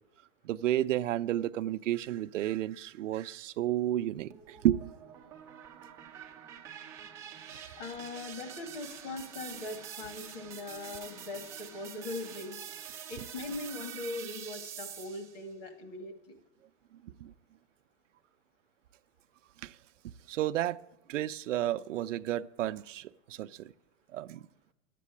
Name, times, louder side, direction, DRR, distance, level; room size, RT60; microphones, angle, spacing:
voice 1, 0.4-4.8 17.2-17.3 19.6-19.7 20.3-20.8 21.1-23.7 24.1-24.4, right 13 dB, 80° right, 0.6 m, -31 dB
sound 1, 4.3-15.4, right 9 dB, 10° right, 0.4 m, -46 dB
voice 2, 7.8-12.6 13.1-16.3, left 3 dB, 40° left, 2.2 m, -41 dB
11.0 x 8.4 x 8.4 m
hypercardioid pair, 150°, 37 cm